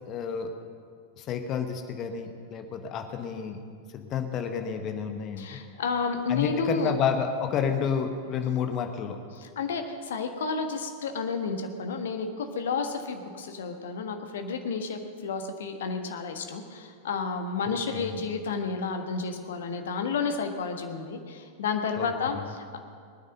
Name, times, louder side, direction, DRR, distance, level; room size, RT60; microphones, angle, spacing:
voice 1, 0.1-0.5 1.2-3.6 3.9-5.6 6.3-9.2 17.7-18.2 22.0-22.4, left 7 dB, 35° left, 7 dB, 1.3 m, -30 dB
voice 2, 5.4-6.9 9.3-22.8, left 4 dB, 60° left, 6 dB, 1.5 m, -31 dB
20.5 x 9.5 x 6.6 m, 2.2 s
figure-of-eight pair, 90°, 0 cm